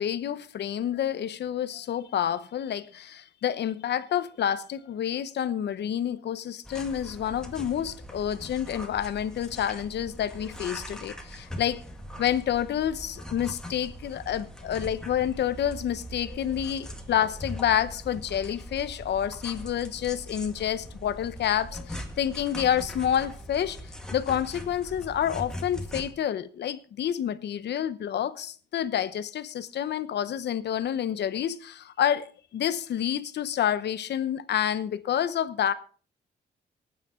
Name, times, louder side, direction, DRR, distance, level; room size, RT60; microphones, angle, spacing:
voice 1, 0.0-11.8 12.2-23.8 24.1-35.7, left 10 dB, 70° left, 0.9 m, -28 dB
sound 1, 6.6-26.1, equal, 5° left, 2.0 m, -41 dB
18.5 x 9.2 x 3.8 m
cardioid pair, 105°, 18 cm